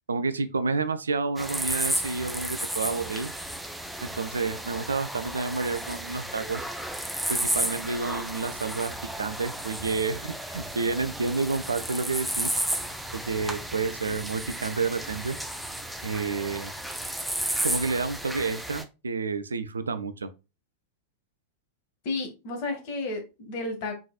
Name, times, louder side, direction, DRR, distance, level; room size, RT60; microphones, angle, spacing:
voice 1, 0.1-3.3 4.0-6.6 7.3-8.9 9.2-12.5 13.1-15.4 16.0-16.7 17.6-20.3, right 4 dB, 75° right, 0.5 m, -29 dB
sound 1, 1.4-18.8, right 1 dB, 5° right, 0.6 m, -33 dB
voice 2, 22.0-23.9, left 3 dB, 50° left, 1.5 m, -32 dB
4.8 x 4.0 x 2.3 m
figure-of-eight pair, 90°, 0 cm